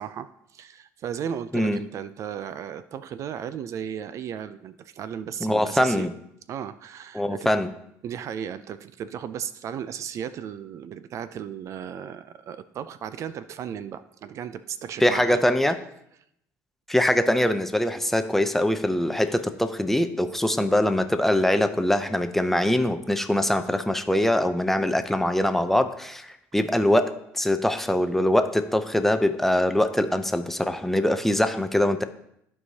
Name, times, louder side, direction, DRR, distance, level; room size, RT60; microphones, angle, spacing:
voice 1, 0.0-6.1 6.5-7.5 8.0-15.5, right 8 dB, 50° right, 14 dB, 0.4 m, -35 dB
voice 2, 5.4-6.1 7.1-7.7 15.0-15.8 16.9-32.0, left 1 dB, 5° left, 9 dB, 0.5 m, -23 dB
13.5 x 4.7 x 2.8 m, 0.76 s
cardioid pair, 105°, 7 cm